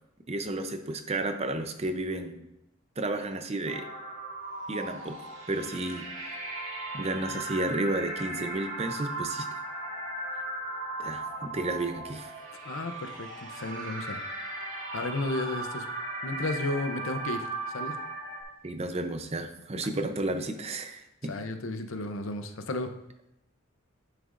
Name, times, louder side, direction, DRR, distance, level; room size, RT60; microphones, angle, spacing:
voice 1, 0.3-2.5 3.0-3.9 4.7-6.4 6.9-9.5 11.0-12.4 18.6-21.3, right 2 dB, 30° right, 7 dB, 0.6 m, -32 dB
sound 1, 3.6-18.4, right 2 dB, 85° right, 2.2 m, -37 dB
voice 2, 12.6-14.2 14.7-15.9 16.2-18.0 21.3-22.9, left 2 dB, 75° left, 8 dB, 0.7 m, -33 dB
11.0 x 6.7 x 2.6 m, 0.86 s
head